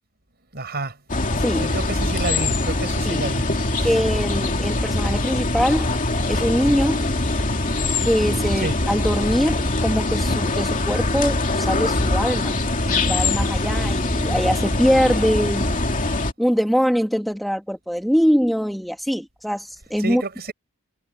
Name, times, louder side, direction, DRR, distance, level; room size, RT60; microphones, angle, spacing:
voice 1, 0.5-1.0 1.6-3.5 3.8-3.9 8.6-8.8 20.0-20.5, right 2 dB, 50° right, 5.9 m, -29 dB
sound 1, 1.1-16.3, left 2 dB, 40° left, 2.5 m, -23 dB
voice 2, 3.8-7.2 8.0-12.6 12.8-15.8 16.4-20.2, equal, ahead, 2.5 m, -23 dB
head